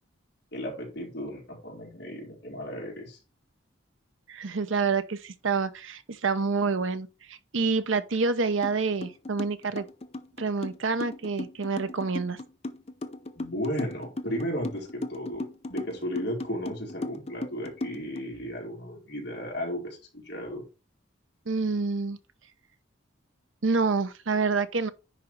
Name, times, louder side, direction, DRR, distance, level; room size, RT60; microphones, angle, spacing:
voice 1, 0.5-3.2 13.4-20.6, equal, 55° left, 4.0 m, -35 dB
voice 2, 4.3-9.9 10.4-12.4 21.5-22.2 23.6-24.9, right 4 dB, 80° right, 0.8 m, -27 dB
sound 1, 8.6-8.7 9.0-18.2, left 2 dB, 30° left, 0.6 m, -36 dB
10.0 x 3.7 x 4.5 m
head